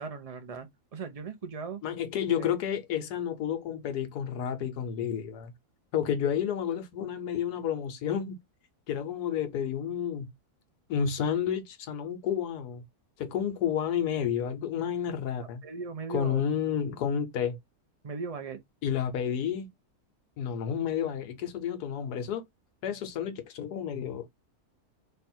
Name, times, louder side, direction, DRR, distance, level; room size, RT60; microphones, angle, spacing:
voice 1, 0.0-1.8 2.4-2.5 15.6-16.4 18.0-18.6, right 5 dB, 45° right, 0.5 m, -38 dB
voice 2, 1.8-5.5 5.9-8.4 8.9-10.3 10.9-12.8 13.2-15.6 16.1-17.6 18.8-19.7 20.4-22.4 22.8-24.3, left 8 dB, 85° left, 1.3 m, -30 dB
3.3 x 2.4 x 4.2 m
omnidirectional pair, 1.7 m